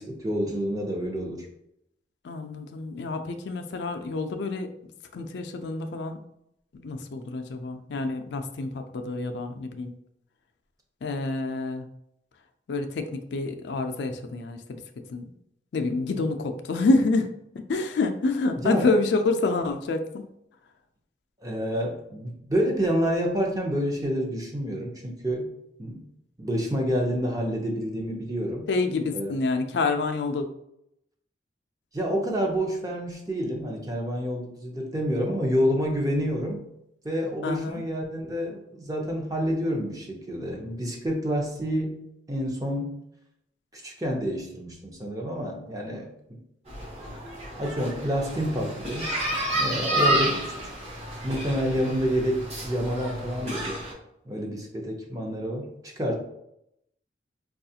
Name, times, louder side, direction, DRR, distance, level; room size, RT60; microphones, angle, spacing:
voice 1, 0.0-1.5 18.6-18.9 21.4-25.5 25.8-26.0 26.4-28.7 29.1-29.3 31.9-36.6 37.0-42.0 42.3-43.0 43.7-46.1 47.6-49.1 49.5-50.7 51.2-53.8 54.3-56.2, equal, 20° right, 0 dB, 0.6 m, -28 dB
voice 2, 2.2-4.7 5.1-6.2 6.7-9.9 11.0-11.9 12.7-14.8 15.1-15.2 15.7-20.2 28.7-30.5 37.4-37.8 50.0-50.3, left 3 dB, 75° left, 6 dB, 0.4 m, -27 dB
sound 1, 46.7-53.9, right 1 dB, 35° right, 1.0 m, -30 dB
4.7 x 2.3 x 2.7 m, 0.78 s
head